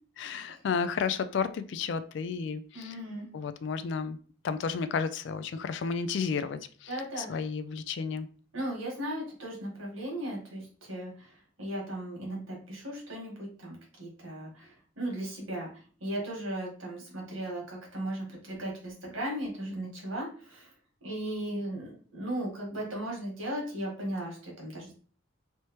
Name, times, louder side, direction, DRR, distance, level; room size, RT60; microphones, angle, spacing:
voice 1, 0.2-2.9 3.3-4.2 4.4-6.9 7.2-8.3, left 5 dB, 60° left, 0.3 m, -32 dB
voice 2, 2.7-3.3 6.9-7.4 8.5-11.3 11.6-15.7 16.0-20.7 21.0-24.9, right 1 dB, 80° right, 1.6 m, -37 dB
3.3 x 2.8 x 3.0 m
head